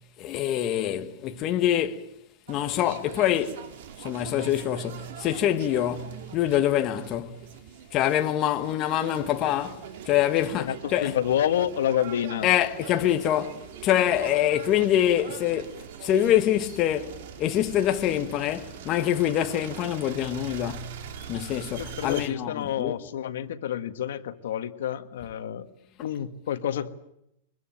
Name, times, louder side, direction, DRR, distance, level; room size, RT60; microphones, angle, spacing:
voice 1, 0.2-2.1 2.5-3.7 4.0-7.4 7.9-11.2 12.4-20.9 21.3-22.9, left 11 dB, 25° left, 1.3 m, -25 dB
sound 1, 2.5-22.3, right 8 dB, 55° right, 2.3 m, -43 dB
voice 2, 10.6-12.5 21.8-25.7 26.0-26.9, left 10 dB, 75° left, 1.7 m, -28 dB
24.0 x 21.0 x 9.2 m
supercardioid pair, 170°, 0 cm